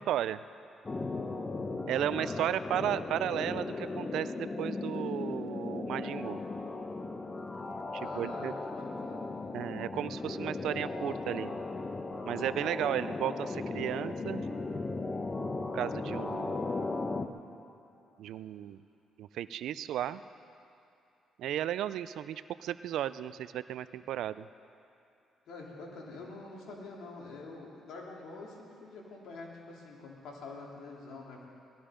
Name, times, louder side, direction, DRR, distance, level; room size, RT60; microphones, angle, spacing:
voice 1, 0.1-0.4 1.9-6.4 7.9-8.5 9.5-11.5 12.2-14.5 15.7-16.8 18.2-18.8 19.2-20.2 21.4-24.5, right 11 dB, 80° right, 15 dB, 0.4 m, -34 dB
sound 1, 0.8-17.3, left 3 dB, 25° left, 0.9 m, -37 dB
voice 2, 8.0-9.4 12.9-13.1 25.5-31.5, left 3 dB, 75° left, -2 dB, 3.1 m, -46 dB
18.5 x 13.5 x 5.1 m, 2.7 s
cardioid pair, 90°, 0 cm